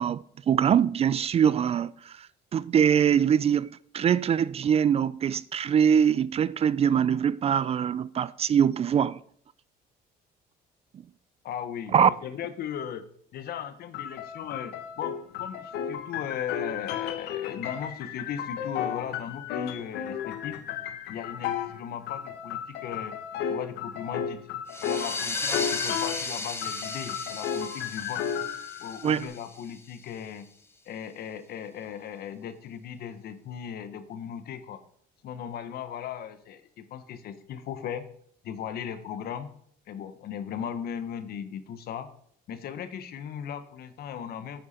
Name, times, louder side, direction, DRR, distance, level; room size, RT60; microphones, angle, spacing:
voice 1, 0.0-2.2 2.5-9.2 11.9-12.1 29.0-29.3, right 8 dB, 35° right, 0.4 m, -23 dB
voice 2, 11.4-13.0 13.3-20.6 21.1-23.1 23.5-24.4 24.8-28.3 28.8-30.5 30.9-34.8 35.2-38.1 38.4-39.5 39.9-42.1 42.5-44.6, left 8 dB, 65° left, 1.2 m, -37 dB
sound 1, 13.9-21.8 22.1-26.3 26.6-29.2, left 8 dB, 85° left, 1.2 m, -34 dB
sound 2, 24.7-30.0, left 3 dB, 15° left, 1.3 m, -35 dB
11.0 x 9.3 x 4.4 m
cardioid pair, 110°, 17 cm